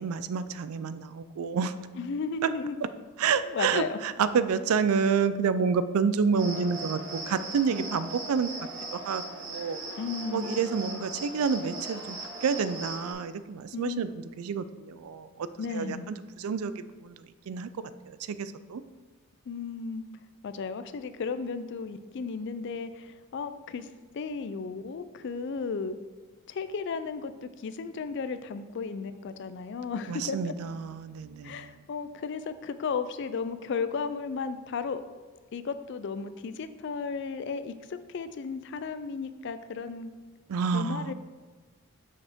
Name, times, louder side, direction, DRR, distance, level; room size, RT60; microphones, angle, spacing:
voice 1, 0.0-1.7 2.4-2.5 3.2-8.5 8.9-9.8 10.3-14.1 14.4-17.7 18.1-18.8 30.1-31.8 40.5-41.1, right 6 dB, 80° right, 13 dB, 0.4 m, -29 dB
voice 2, 2.0-2.8 3.5-4.0 10.0-10.7 13.7-14.2 15.6-16.2 19.5-20.1 20.4-23.9 24.1-26.0 26.5-30.5 31.4-35.0 35.5-40.1 40.7-41.1, left 5 dB, 55° left, 11 dB, 0.3 m, -34 dB
Cricket, 6.3-13.1, right 2 dB, 60° right, 2.2 m, -39 dB
6.6 x 5.3 x 3.5 m, 1.3 s
head